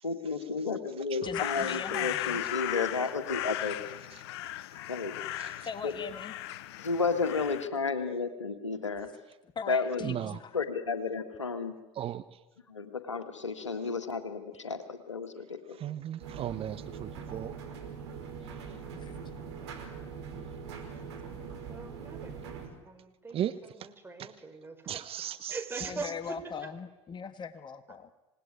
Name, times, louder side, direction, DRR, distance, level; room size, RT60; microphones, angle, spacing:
voice 1, 0.0-4.0 4.9-5.2 5.8-5.9 6.8-9.1 9.7-10.1 10.5-11.8 12.7-15.8, left 4 dB, 85° left, 9 dB, 1.9 m, -32 dB
voice 2, 1.2-2.4 5.6-6.3 9.5-10.6 18.9-19.2 25.8-28.1, left 6 dB, 30° left, 11 dB, 1.5 m, -40 dB
sound 1, 1.3-7.7, left 14 dB, 65° left, 0.8 m, -37 dB
voice 3, 5.3-5.7 10.0-10.4 12.0-12.2 15.8-17.5 23.3-23.5 23.8-23.9 24.2-24.3 24.9-25.9, right 11 dB, 40° right, 13 dB, 1.1 m, -36 dB
sound 2, 16.2-22.7, right 6 dB, 70° right, 4.9 m, -42 dB
voice 4, 21.7-25.2 25.5-26.4, right 3 dB, 15° right, 6 dB, 4.6 m, -43 dB
27.0 x 19.0 x 9.7 m, 1.0 s
figure-of-eight pair, 70°, 15 cm